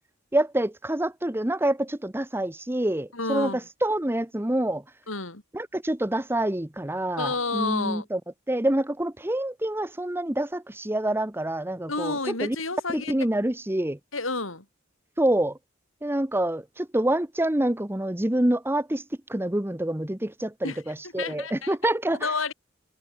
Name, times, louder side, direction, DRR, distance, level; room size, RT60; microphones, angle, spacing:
voice 1, 0.3-4.8 5.5-8.2 8.5-12.6 12.9-14.0 15.2-15.6 16.0-19.0 19.3-22.3, right 1 dB, 10° right, 0.9 m, -27 dB
voice 2, 3.1-3.6 5.1-5.4 7.2-8.1 11.9-13.1 14.1-14.6 20.6-20.8 21.2-21.8 22.2-22.5, left 3 dB, 80° left, 7.1 m, -30 dB
head